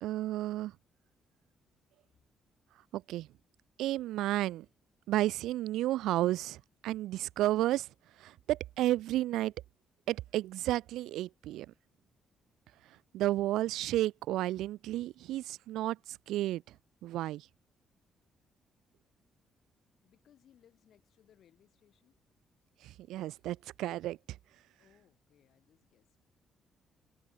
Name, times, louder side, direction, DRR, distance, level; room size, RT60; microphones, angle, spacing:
voice 1, 0.0-0.7 2.9-3.3 3.8-4.7 5.1-7.9 8.2-9.5 10.1-11.7 13.1-16.6 17.0-17.5 22.8-24.2, right 15 dB, 65° right, 0.3 m, -32 dB
voice 2, 20.0-22.2 24.8-26.2, left 10 dB, 55° left, 7.4 m, -66 dB
figure-of-eight pair, 40°, 0 cm